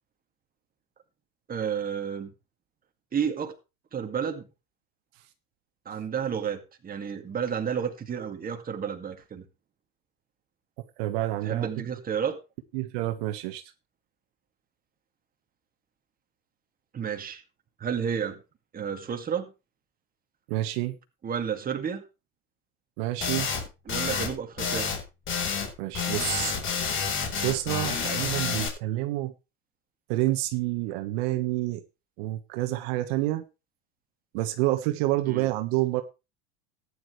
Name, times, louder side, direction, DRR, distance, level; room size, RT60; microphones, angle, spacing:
voice 1, 1.5-2.3 3.1-3.5 3.9-4.5 5.9-9.4 11.4-12.4 16.9-17.4 17.8-18.4 18.7-19.5 21.2-22.0 23.9-24.9 35.3-35.5, right 7 dB, 25° right, 2.2 m, -31 dB
voice 2, 11.0-11.7 12.7-13.6 20.5-21.0 23.0-23.5 25.8-26.5 27.3-29.3 30.1-31.8 32.2-33.4 34.3-36.0, right 16 dB, 70° right, 1.4 m, -28 dB
sound 1, 23.2-23.6 23.9-24.3 24.6-25.0 25.3-25.7 25.9-28.7, left 6 dB, 40° left, 4.1 m, -29 dB
14.5 x 10.0 x 3.2 m
supercardioid pair, 110°, 32 cm